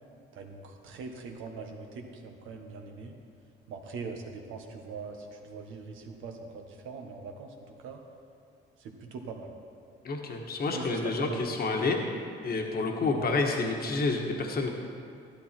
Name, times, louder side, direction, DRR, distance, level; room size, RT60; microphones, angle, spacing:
voice 1, 0.3-3.1 3.7-7.5 7.8-8.0 8.8-9.5 10.7-11.4 13.2-13.4, right 4 dB, 85° right, 3 dB, 1.5 m, -41 dB
voice 2, 10.0-12.0 12.4-14.7, left 3 dB, 50° left, 2 dB, 1.5 m, -29 dB
13.0 x 12.0 x 4.5 m, 2.3 s
cardioid pair, 90°, 20 cm